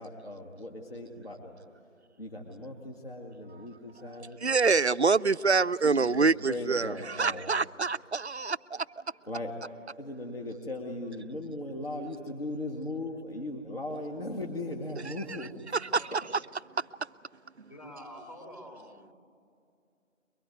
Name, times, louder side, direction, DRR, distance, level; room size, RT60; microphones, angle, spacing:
voice 1, 0.0-1.5 2.2-4.4 5.8-7.5 9.3-9.6 10.0-15.5, left 1 dB, 50° left, 2.2 m, -38 dB
voice 2, 4.0-9.0 15.7-16.2 16.8-16.9 17.6-17.7, right 4 dB, 60° right, 0.5 m, -26 dB
voice 3, 17.7-19.1, equal, 30° left, 4.0 m, -47 dB
23.0 x 22.0 x 9.3 m
figure-of-eight pair, 180°, 39 cm